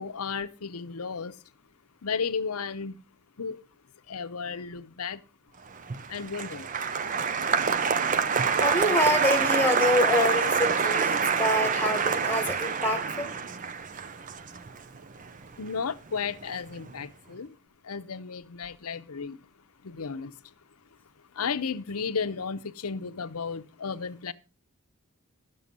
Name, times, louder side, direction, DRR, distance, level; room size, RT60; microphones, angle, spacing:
voice 1, 0.0-1.4 2.0-3.0 3.4-3.6 4.1-5.2 6.1-6.7 15.6-17.6 17.8-19.4 19.8-20.3 21.3-24.3, left 5 dB, 90° left, 0.7 m, -33 dB
Applause, 5.8-16.2 16.4-17.0, right 6 dB, 35° right, 0.5 m, -27 dB
voice 2, 8.6-13.4, left 1 dB, 10° left, 1.5 m, -26 dB
11.0 x 7.0 x 5.3 m
head